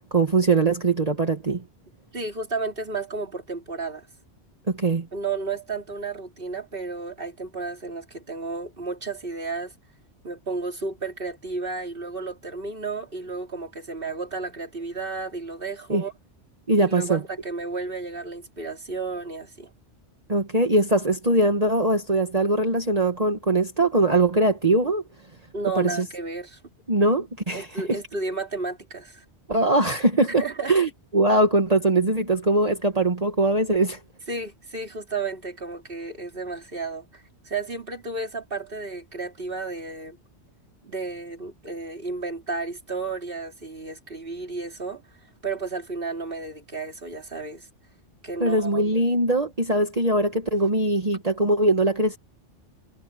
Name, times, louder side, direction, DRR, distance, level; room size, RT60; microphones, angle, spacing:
voice 1, 0.1-1.6 4.7-5.1 15.9-16.0 16.7-17.2 20.3-25.0 25.8-26.0 26.9-28.0 29.5-34.0 48.4-52.2, right 2 dB, 35° right, 1.7 m, -21 dB
voice 2, 2.1-4.1 5.1-9.7 10.2-16.1 16.8-19.7 25.5-26.6 27.5-29.2 30.4-30.8 34.3-40.2 40.8-45.0 45.4-47.7 48.2-48.8, right 3 dB, 50° right, 3.3 m, -32 dB
omnidirectional pair, 1.2 m